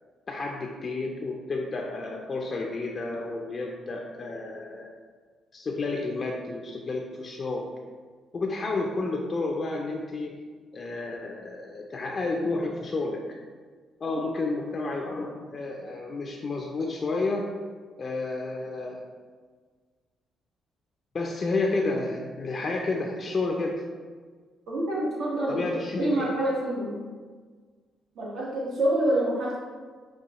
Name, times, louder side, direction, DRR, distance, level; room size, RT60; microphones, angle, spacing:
voice 1, 0.3-4.9 5.5-7.6 8.3-10.3 10.7-13.2 14.0-17.4 18.0-19.0 21.1-23.8 25.5-26.3, left 3 dB, 40° left, 0 dB, 0.4 m, -31 dB
voice 2, 24.7-25.6 26.0-27.0 28.2-29.6, right 1 dB, 75° right, -6 dB, 1.3 m, -26 dB
5.4 x 2.3 x 2.9 m, 1.5 s
cardioid pair, 90°, 0 cm